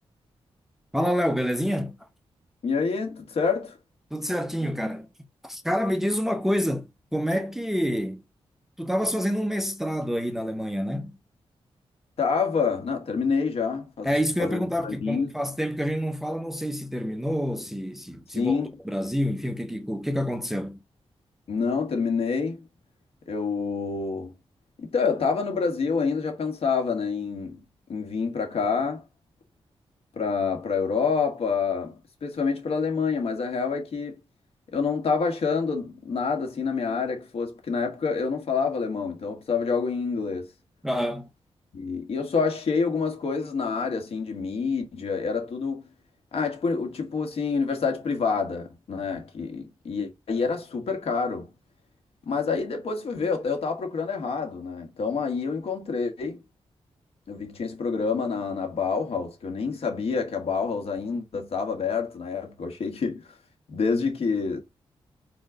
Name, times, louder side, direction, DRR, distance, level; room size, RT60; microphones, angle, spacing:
voice 1, 0.9-2.0 4.1-5.1 5.4-8.2 8.8-11.2 14.0-20.8 40.8-41.3, equal, 5° right, 0.7 m, -27 dB
voice 2, 2.6-3.8 12.2-14.1 14.4-15.3 18.4-18.7 21.5-22.6 23.3-24.3 24.8-27.6 27.9-29.0 30.2-34.1 34.7-40.5 41.7-45.8 46.3-51.5 52.3-56.4 57.3-63.3 63.7-64.6, left 5 dB, 70° left, 2.0 m, -27 dB
4.4 x 4.3 x 5.0 m
wide cardioid pair, 140°, 10 cm